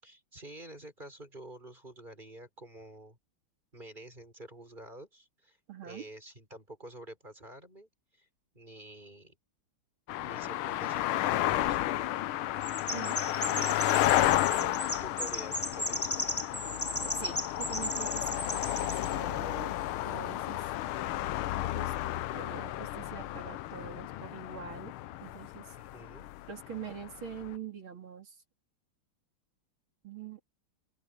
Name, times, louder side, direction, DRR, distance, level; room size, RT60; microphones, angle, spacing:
voice 1, 0.0-3.2 3.7-5.6 5.8-8.3 8.5-9.4 10.2-12.0 15.0-16.2 25.8-26.3, right 1 dB, 20° right, 6.0 m, -49 dB
voice 2, 5.7-6.1 12.9-13.6 14.6-14.9 16.6-19.7 20.0-20.6 21.0-21.1 21.7-21.9 22.3-24.9 25.2-25.8 26.5-28.4 30.0-30.4, right 7 dB, 70° right, 3.8 m, -44 dB
sound 1, 10.1-27.6, left 14 dB, 90° left, 1.5 m, -32 dB
Chirp tweet, 12.6-19.1, left 1 dB, 5° left, 1.5 m, -36 dB
open air
omnidirectional pair, 2.3 m